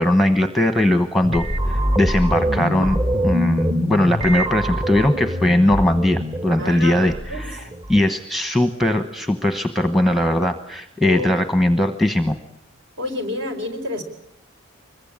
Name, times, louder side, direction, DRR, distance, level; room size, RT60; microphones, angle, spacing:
voice 1, 0.0-3.0 3.2-7.6 7.9-12.4, left 1 dB, ahead, 8 dB, 1.0 m, -19 dB
sound 1, 1.2-8.1, equal, 30° right, 1.4 m, -24 dB
voice 2, 6.6-7.4 11.0-11.3 13.0-14.0, left 1 dB, 65° right, 6 dB, 4.7 m, -28 dB
25.0 x 22.0 x 8.8 m, 0.77 s
head